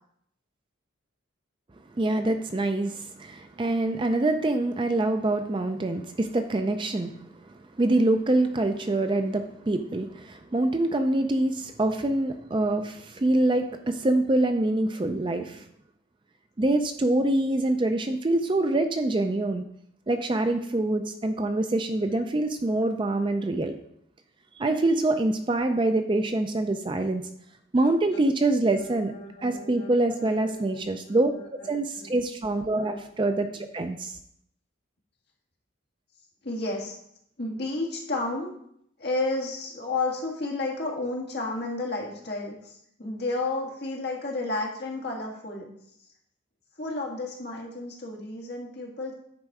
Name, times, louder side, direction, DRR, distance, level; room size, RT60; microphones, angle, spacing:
voice 1, 2.0-7.1 7.5-15.6 16.6-19.6 20.1-23.8 24.6-27.2 27.7-29.1 29.4-31.3 31.6-34.2, right 2 dB, 25° right, 7 dB, 0.4 m, -25 dB
voice 2, 28.8-29.9 30.2-31.4 32.0-32.2 32.8-33.0 33.5-33.6 36.4-37.0 37.4-38.5 39.0-45.7 46.8-49.1, left 2 dB, 50° left, -1 dB, 1.8 m, -32 dB
9.7 x 4.2 x 4.8 m, 0.73 s
head